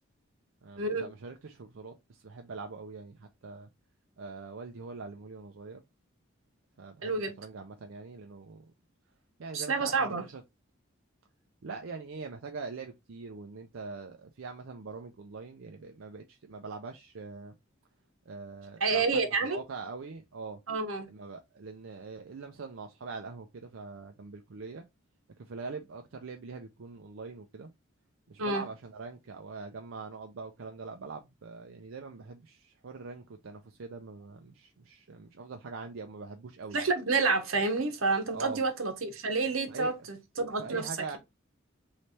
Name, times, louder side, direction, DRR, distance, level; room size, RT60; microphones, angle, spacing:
voice 1, 0.6-3.7 4.2-5.8 6.8-8.6 9.4-10.4 11.6-17.6 18.3-20.6 21.1-24.8 25.4-27.7 28.3-36.9 38.3-38.6 39.7-39.9 40.6-41.2, right 4 dB, 70° right, 0.5 m, -43 dB
voice 2, 7.0-7.3 9.5-10.3 18.8-19.6 20.7-21.1 28.4-28.6 36.7-40.9, right 3 dB, 85° right, 1.1 m, -29 dB
3.3 x 3.2 x 4.1 m
head